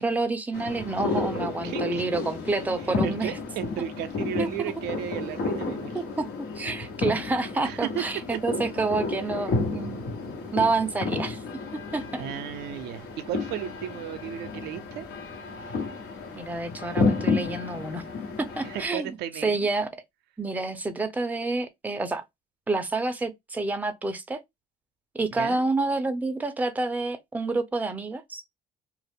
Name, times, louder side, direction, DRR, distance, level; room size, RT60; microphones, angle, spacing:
voice 1, 0.0-3.4 4.4-4.5 5.9-6.3 6.6-10.1 10.5-11.4 11.7-12.2 16.3-18.0 18.4-19.1 19.4-19.9 20.4-22.2 22.7-24.4 25.1-28.4, right 3 dB, 10° right, 0.5 m, -28 dB
sound 1, 0.5-18.9, left 3 dB, 70° left, 1.1 m, -31 dB
voice 2, 1.6-2.1 2.8-6.0 7.6-8.4 9.4-9.5 12.2-15.1 18.6-19.7 25.3-25.6, right 11 dB, 80° right, 0.4 m, -35 dB
2.3 x 2.0 x 3.4 m
cardioid pair, 110°, 17 cm